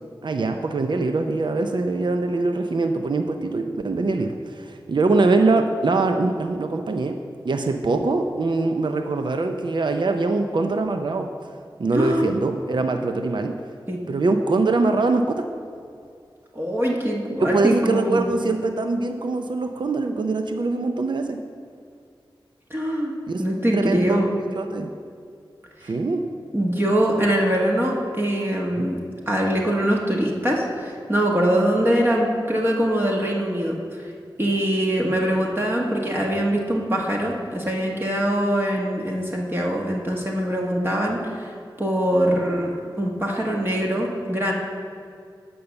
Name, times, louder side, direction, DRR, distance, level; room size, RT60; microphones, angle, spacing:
voice 1, 0.2-7.2 7.4-11.5 11.8-13.6 14.1-15.5 17.4-21.4 23.3-23.4 23.7-24.2 24.5-24.9 25.8-26.3, right 3 dB, 60° right, 6 dB, 0.5 m, -23 dB
voice 2, 11.9-12.3 13.9-14.0 16.5-18.3 22.7-23.1 23.4-24.4 25.8-25.9 26.5-34.1 34.4-44.5, equal, 25° right, -2 dB, 1.3 m, -23 dB
8.5 x 5.4 x 6.9 m, 2.3 s
cardioid pair, 45°, 9 cm